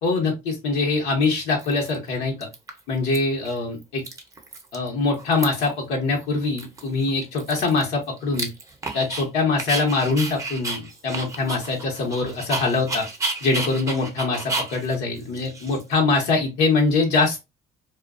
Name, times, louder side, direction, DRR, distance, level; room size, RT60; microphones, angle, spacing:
voice 1, 0.0-2.5 2.9-4.0 4.7-8.5 8.9-13.1 13.4-17.4, left 3 dB, 90° left, 0 dB, 1.0 m, -23 dB
Dog, 0.9-1.0 1.6-2.1 2.4-3.2 3.5-3.6 3.8-4.9 5.1-5.8 6.2-6.3 6.6-9.3 9.6-16.2, right 2 dB, 20° right, 0.6 m, -32 dB
2.3 x 2.2 x 2.4 m, 0.23 s
cardioid pair, 110°, 17 cm